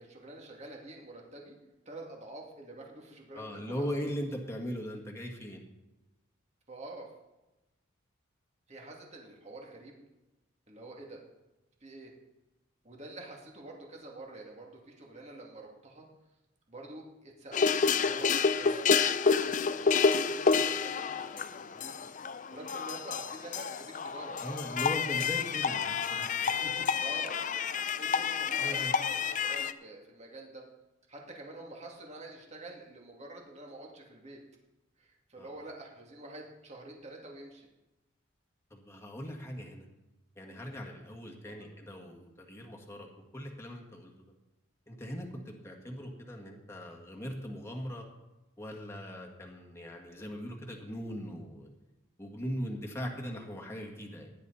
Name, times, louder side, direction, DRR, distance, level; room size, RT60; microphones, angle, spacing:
voice 1, 0.0-1.6 1.9-3.9 6.7-7.1 8.7-9.9 10.7-11.2 11.8-12.1 12.8-16.1 16.7-22.1 22.5-24.7 25.2-25.3 27.0-27.4 27.9-30.7 31.1-34.4 35.0-37.7 41.4-41.7, right 2 dB, 35° right, 0 dB, 2.4 m, -47 dB
voice 2, 3.3-5.6 24.4-26.3 26.6-26.7 28.6-28.9 35.4-35.5 38.7-39.9 40.4-43.1 43.3-44.1 44.9-48.0 48.6-51.7 52.2-54.3, equal, 15° left, 0 dB, 1.8 m, -39 dB
sound 1, 17.5-29.7, left 5 dB, 40° left, 0.5 m, -29 dB
16.5 x 10.5 x 4.2 m, 1.0 s
head